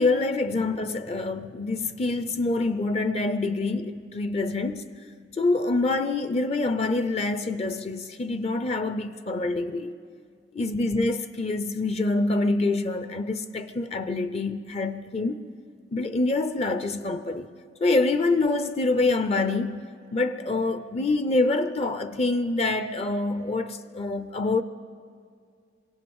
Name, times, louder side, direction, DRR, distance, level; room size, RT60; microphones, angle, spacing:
voice 1, 0.0-4.8 5.4-10.0 10.5-15.4 15.9-17.5 17.8-24.6, left 2 dB, 35° left, 0.5 m, -26 dB
23.0 x 17.0 x 7.1 m
head